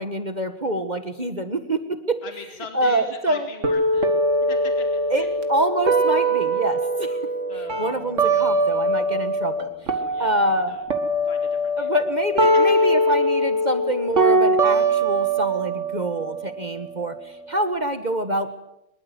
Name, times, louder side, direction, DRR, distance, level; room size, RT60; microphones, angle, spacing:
voice 1, 0.0-2.2 2.7-3.5 5.1-7.2 7.8-9.7 10.2-10.8 11.8-18.5, right 1 dB, 30° right, 8 dB, 1.6 m, -26 dB
voice 2, 2.2-4.1 4.4-5.3 7.5-8.0 10.0-10.8 11.3-11.9 13.1-13.2, left 4 dB, 45° left, 4 dB, 2.4 m, -41 dB
sound 1, 3.6-9.6 9.9-17.7, right 1 dB, 55° right, 2.3 m, -22 dB
24.0 x 21.5 x 8.0 m, 0.88 s
omnidirectional pair, 1.5 m